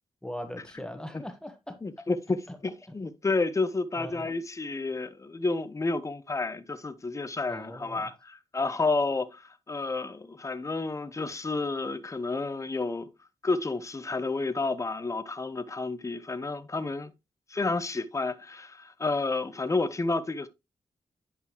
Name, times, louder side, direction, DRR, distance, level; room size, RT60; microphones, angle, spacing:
voice 1, 0.2-1.8 2.5-2.6 4.0-4.3 7.5-8.1, left 1 dB, 5° left, 1.4 m, -40 dB
voice 2, 1.8-13.1 13.4-17.1 17.5-20.5, left 3 dB, 30° left, 1.0 m, -30 dB
10.5 x 5.4 x 3.1 m
cardioid pair, 75°, 11 cm